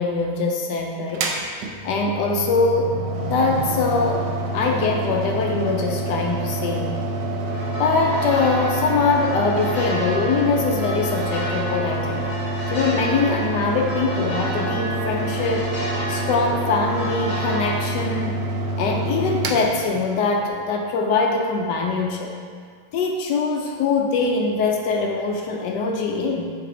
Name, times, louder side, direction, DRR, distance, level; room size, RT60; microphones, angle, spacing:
voice 1, 0.0-1.3 1.8-3.0 3.2-6.9 7.8-12.3 12.7-15.7 16.1-18.4 18.8-22.3 22.9-26.5, left 4 dB, 75° left, 1 dB, 1.0 m, -23 dB
Mechanical fan, 1.1-20.5, right 2 dB, 70° right, 1.3 m, -27 dB
sound 1, 7.4-17.8, equal, 25° left, 1.5 m, -31 dB
8.0 x 3.2 x 3.8 m, 2.1 s
omnidirectional pair, 2.2 m